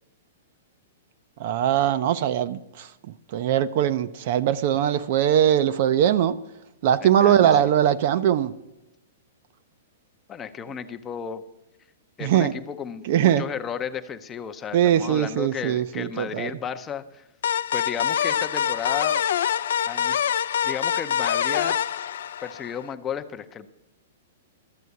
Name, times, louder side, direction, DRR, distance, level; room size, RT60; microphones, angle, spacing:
voice 1, 1.4-2.9 3.3-6.4 6.8-8.5 12.2-12.6 13.0-13.4 14.7-16.5, right 10 dB, 45° right, 0.5 m, -21 dB
voice 2, 7.0-7.7 10.3-11.4 12.2-17.3 17.7-19.2 19.9-20.2 20.6-21.8 22.4-23.7, left 7 dB, 15° left, 0.6 m, -33 dB
sound 1, 17.4-22.9, left 9 dB, 70° left, 0.4 m, -25 dB
12.5 x 7.6 x 8.2 m
hypercardioid pair, 160°, 0 cm